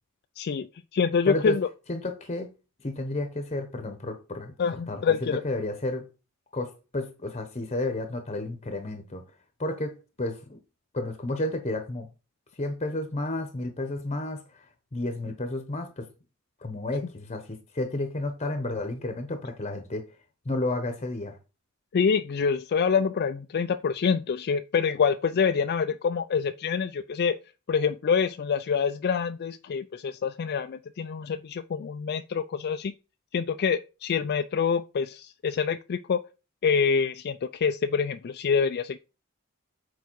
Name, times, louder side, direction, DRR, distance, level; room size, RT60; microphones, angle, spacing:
voice 1, 0.4-1.7 4.6-5.4 21.9-27.4 27.7-32.9 33.3-36.2 36.6-39.0, left 6 dB, 50° left, 0.4 m, -26 dB
voice 2, 1.2-1.6 1.9-2.5 2.8-4.5 4.9-6.1 6.5-9.2 9.6-10.6 10.9-12.1 12.6-14.7 14.9-16.1 16.6-20.0 20.4-21.4, left 2 dB, 30° left, 0.9 m, -31 dB
6.9 x 4.7 x 4.6 m
head